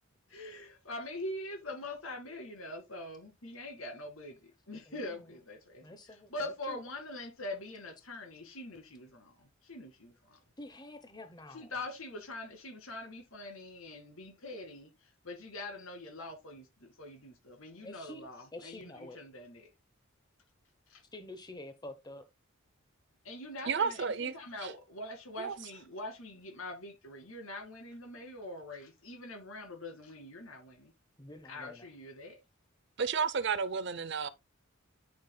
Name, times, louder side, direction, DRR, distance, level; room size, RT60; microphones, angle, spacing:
voice 1, 0.3-5.8 6.3-10.4 11.5-14.9 15.2-19.7 20.9-21.0 23.2-30.9 31.4-32.4, left 1 dB, 80° left, 2.2 m, -44 dB
voice 2, 4.9-5.4 5.8-6.8 10.6-11.7 17.8-18.2 18.5-19.2 21.1-22.2 31.2-31.9, left 1 dB, 20° left, 0.9 m, -48 dB
voice 3, 23.7-24.7 25.4-25.6 33.0-34.3, right 6 dB, 55° right, 0.6 m, -32 dB
9.5 x 6.0 x 2.2 m
head